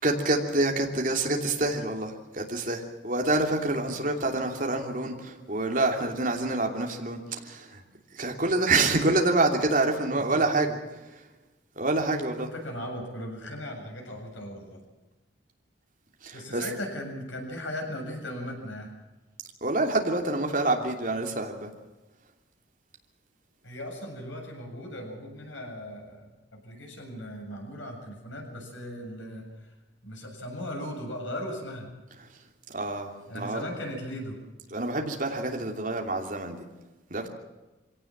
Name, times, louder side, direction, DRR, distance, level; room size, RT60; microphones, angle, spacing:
voice 1, 0.0-7.8 8.1-10.7 11.8-12.5 16.2-16.6 19.6-21.7 32.7-33.7 34.7-36.6 37.1-37.3, right 2 dB, 45° right, 2 dB, 3.0 m, -27 dB
voice 2, 10.1-10.5 12.4-14.8 16.3-18.9 23.6-29.7 30.0-31.9 33.3-34.4, left 1 dB, 85° left, 2 dB, 7.4 m, -38 dB
24.5 x 17.5 x 7.4 m, 1.1 s
head